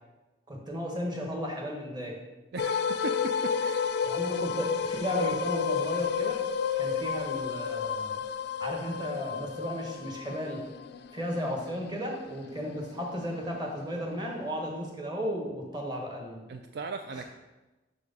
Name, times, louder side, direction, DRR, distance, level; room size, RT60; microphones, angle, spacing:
voice 1, 0.5-2.2 4.0-6.4 6.8-8.2 8.6-10.6 11.1-16.6 17.1-17.2, equal, 25° right, 0 dB, 1.4 m, -34 dB
voice 2, 2.5-4.0 16.5-17.2, right 4 dB, 60° right, 6 dB, 0.4 m, -38 dB
sound 1, 2.6-13.8, left 6 dB, 60° left, 0.3 m, -32 dB
6.1 x 4.9 x 5.3 m, 1.1 s
head